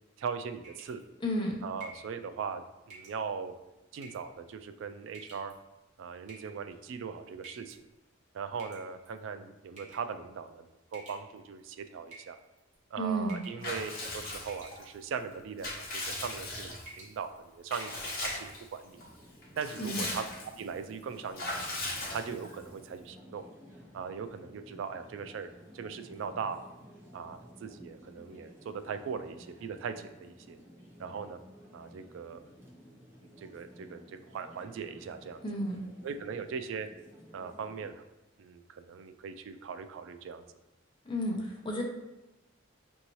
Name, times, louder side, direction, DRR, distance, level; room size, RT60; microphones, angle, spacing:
voice 1, 0.2-1.0 1.6-3.5 3.9-5.5 6.0-7.8 8.3-12.4 12.9-19.0 19.6-20.2 20.6-21.7 22.1-23.4 23.9-26.7 27.1-30.6 31.0-31.4 31.7-32.5 33.4-35.4 36.0-36.9 37.3-38.0 38.4-40.5, right 6 dB, 75° right, 9 dB, 0.3 m, -39 dB
sound 1, 0.6-1.0 1.8-2.1 2.9-3.2 4.0-4.3 5.1-5.5 6.3-6.7 7.4-7.8 8.6-9.2 9.8-10.1 10.9-11.6 12.1-12.7 13.3-13.6 13.9-14.2 14.5-15.0 15.7-15.9 16.3-16.5 16.8-17.2 17.5-17.6 18.0-18.3, right 3 dB, 40° right, 1.1 m, -50 dB
voice 2, 1.2-1.6 13.0-13.4 19.8-20.1 35.4-35.8 41.0-41.8, equal, 25° left, -1 dB, 0.7 m, -32 dB
Water / Bathtub (filling or washing) / Liquid, 13.6-14.8 15.3-17.0 17.7-18.6 19.0-19.1 19.4-20.6 21.3-22.6, left 2 dB, 50° left, 1.0 m, -38 dB
sound 2, 18.9-37.9, equal, 15° right, 0.7 m, -54 dB
5.4 x 2.7 x 3.0 m, 0.99 s
head